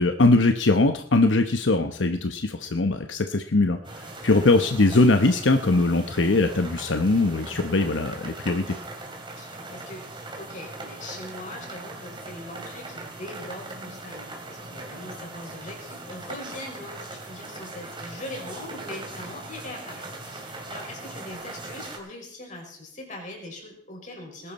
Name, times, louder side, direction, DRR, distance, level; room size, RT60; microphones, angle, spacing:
voice 1, 0.0-8.7, left 2 dB, 85° left, 7 dB, 1.0 m, -21 dB
sound 1, 3.8-22.0, right 2 dB, 25° right, 2.8 m, -40 dB
voice 2, 9.3-10.0 10.4-24.5, left 1 dB, 45° left, 1 dB, 5.1 m, -41 dB
20.0 x 11.5 x 4.2 m, 0.65 s
head